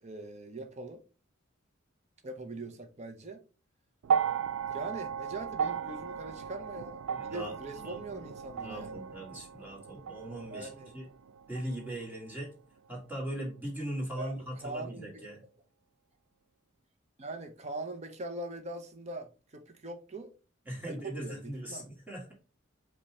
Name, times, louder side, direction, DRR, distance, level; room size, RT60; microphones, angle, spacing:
voice 1, 0.0-1.0 2.2-3.4 4.7-9.0 10.5-10.9 14.2-15.3 17.2-20.3 20.8-21.9, right 2 dB, 35° right, 0.7 m, -42 dB
sound 1, 4.0-12.4 13.4-13.5, right 7 dB, 75° right, 0.3 m, -36 dB
voice 2, 7.1-8.2 8.6-11.1 11.5-12.5 12.9-15.4 20.6-22.3, right 1 dB, 10° right, 1.6 m, -40 dB
5.2 x 2.3 x 4.2 m
head